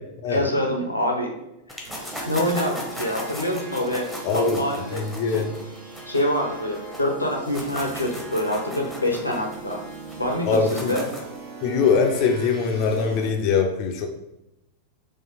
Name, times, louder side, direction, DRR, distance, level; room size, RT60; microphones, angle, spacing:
voice 1, 0.3-1.3 1.7-1.9 2.3-5.4 6.1-9.8 10.2-11.1, left 1 dB, 85° left, 1 dB, 0.6 m, -26 dB
sound 1, 1.7-7.0 7.3-11.4, equal, 5° right, 0.8 m, -37 dB
sound 2, 1.9-13.3, right 3 dB, 40° right, 1.0 m, -40 dB
voice 2, 4.2-4.6 4.9-5.5 10.5-11.0 11.6-14.1, left 5 dB, 40° left, 2 dB, 0.4 m, -22 dB
4.0 x 2.4 x 2.8 m, 0.87 s
figure-of-eight pair, 90°, 0 cm